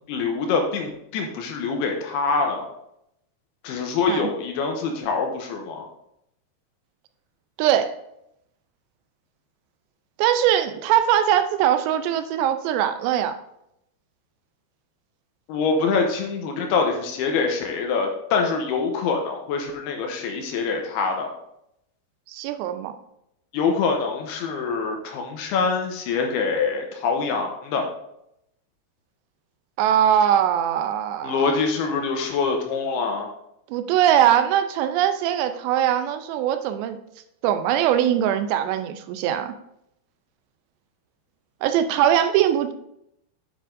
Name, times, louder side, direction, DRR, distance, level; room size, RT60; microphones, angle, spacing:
voice 1, 0.1-2.7 3.6-5.9 15.5-21.3 23.5-27.9 31.2-33.3, left 4 dB, 80° left, 3 dB, 2.6 m, -25 dB
voice 2, 7.6-8.0 10.2-13.3 22.3-22.9 29.8-31.5 33.7-37.0 37.4-39.5 41.6-42.7, right 10 dB, 85° right, 9 dB, 2.7 m, -21 dB
8.8 x 7.6 x 2.6 m, 0.79 s
omnidirectional pair, 5.0 m